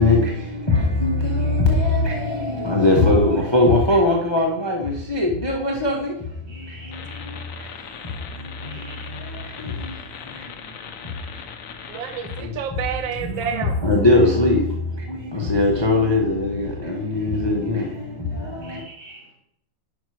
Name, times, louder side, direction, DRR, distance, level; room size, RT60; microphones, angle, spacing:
voice 1, 0.0-7.5 8.0-11.4 11.8-11.9 12.4-12.6 13.2-18.8, left 2 dB, 20° left, 0.9 m, -22 dB
voice 2, 6.4-7.5 8.6-9.6 10.1-10.6 10.9-11.1 15.4-15.5 18.6-19.3, equal, 50° right, 3.8 m, -47 dB
sound 1, 6.9-12.4, left 6 dB, 55° left, 1.0 m, -39 dB
voice 3, 11.9-13.8, right 7 dB, 80° right, 1.4 m, -29 dB
10.0 x 5.7 x 4.9 m
omnidirectional pair, 2.1 m